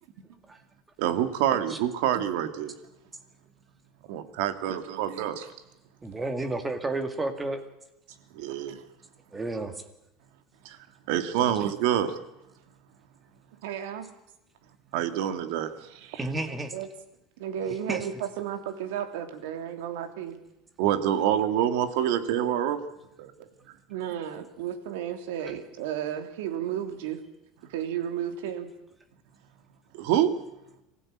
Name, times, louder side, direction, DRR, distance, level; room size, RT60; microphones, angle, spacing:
voice 1, 1.0-2.7 4.1-5.4 8.3-8.8 10.6-10.8 11.1-12.2 14.9-16.2 20.8-22.8 23.2-23.3 29.9-30.3, right 10 dB, 65° right, 9 dB, 2.3 m, -26 dB
voice 2, 4.7-5.4 8.5-8.6 13.6-14.1 16.7-16.9 17.4-20.4 23.9-27.2 27.7-28.7, right 9 dB, 90° right, 7 dB, 3.1 m, -33 dB
voice 3, 6.0-7.6 9.3-9.7 11.4-11.5 16.2-16.7 17.9-18.1, right 2 dB, 10° right, 7 dB, 2.1 m, -31 dB
23.5 x 15.5 x 8.9 m, 0.89 s
cardioid pair, 160°, 0 cm